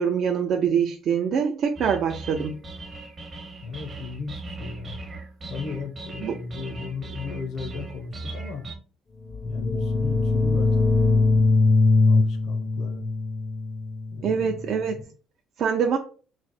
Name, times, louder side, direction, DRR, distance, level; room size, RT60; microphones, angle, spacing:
voice 1, 0.0-2.5 6.2-6.4 14.2-15.0 15.6-16.0, right 7 dB, 60° right, 0.4 m, -24 dB
sound 1, 1.8-8.7, right 2 dB, 35° right, 0.7 m, -38 dB
voice 2, 3.6-5.0 5.5-8.7 9.4-11.4 12.1-13.1 14.1-15.1, left 5 dB, 70° left, 0.6 m, -36 dB
sound 2, 9.2-14.8, left 3 dB, 25° left, 0.4 m, -22 dB
3.1 x 2.0 x 3.9 m
cardioid pair, 100°, 0 cm